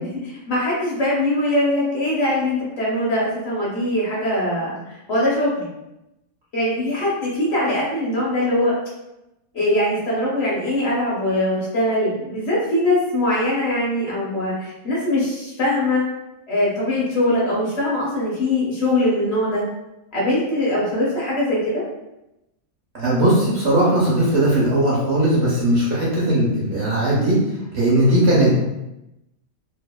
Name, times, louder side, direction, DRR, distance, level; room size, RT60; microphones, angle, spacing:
voice 1, 0.2-5.7 6.5-8.7 9.5-16.0 16.5-19.6 20.1-21.8 28.5-28.6, left 1 dB, 55° left, -6 dB, 0.9 m, -22 dB
voice 2, 22.9-27.4 27.7-28.5, right 1 dB, 55° right, -6 dB, 0.9 m, -18 dB
2.7 x 2.3 x 2.2 m, 0.92 s
omnidirectional pair, 1.5 m